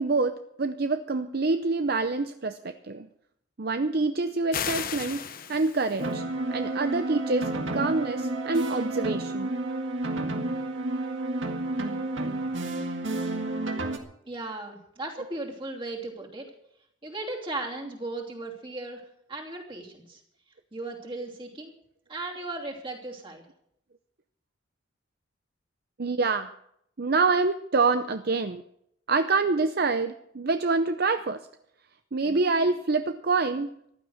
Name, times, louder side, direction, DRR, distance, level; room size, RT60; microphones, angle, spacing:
voice 1, 0.0-3.1 3.6-6.2 6.5-9.5 26.0-26.5 27.0-28.6 29.1-31.4 32.1-33.8, right 3 dB, 50° right, 9 dB, 0.6 m, -26 dB
sound 1, 4.5-6.1, left 8 dB, 45° left, 0.9 m, -34 dB
sound 2, 6.0-14.0, right 2 dB, 65° right, 1.9 m, -30 dB
voice 2, 14.3-16.5 17.0-20.2 20.7-21.7 22.1-23.4, right 2 dB, 25° right, 0 dB, 2.9 m, -36 dB
15.0 x 12.5 x 6.5 m, 0.73 s
head